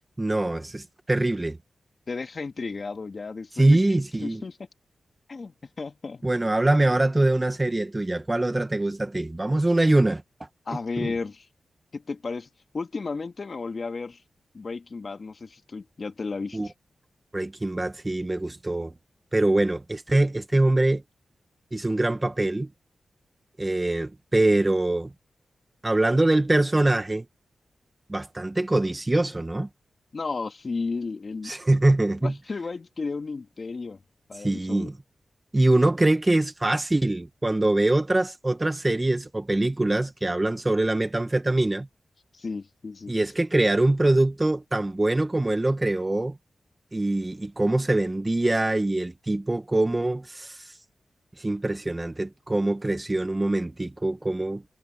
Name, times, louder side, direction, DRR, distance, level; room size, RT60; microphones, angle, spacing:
voice 1, 0.2-1.6 3.5-4.4 6.2-10.5 11.0-11.1 16.5-16.7 17.3-18.9 19.3-21.0 21.7-22.7 23.6-25.1 25.8-27.2 28.1-29.7 31.4-32.3 34.3-34.9 35.5-41.9 43.1-46.4 46.9-50.8 51.4-54.6, right 2 dB, 25° right, 1.3 m, -23 dB
voice 2, 2.1-3.8 4.2-4.6 5.3-6.2 10.7-11.5 11.9-12.5 12.7-14.2 14.5-16.6 30.1-31.5 32.2-34.0 34.3-34.9 42.3-43.1, left 4 dB, 55° left, 2.6 m, -33 dB
cardioid pair, 45°, 0 cm